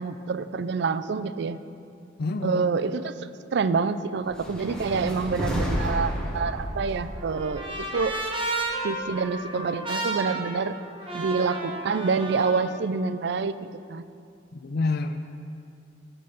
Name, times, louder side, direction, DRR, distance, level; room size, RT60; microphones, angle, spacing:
voice 1, 0.0-1.6 2.4-8.2 8.8-10.7 11.1-13.6 13.9-14.0, right 4 dB, 65° right, 13 dB, 0.4 m, -27 dB
voice 2, 2.2-2.6 14.5-15.3, left 3 dB, 55° left, 8 dB, 0.5 m, -28 dB
sound 1, 4.3-8.5, equal, 5° left, 1.3 m, -31 dB
Trumpet, 6.7-12.7, right 2 dB, 30° right, 1.3 m, -33 dB
15.0 x 5.5 x 5.5 m, 2.4 s
head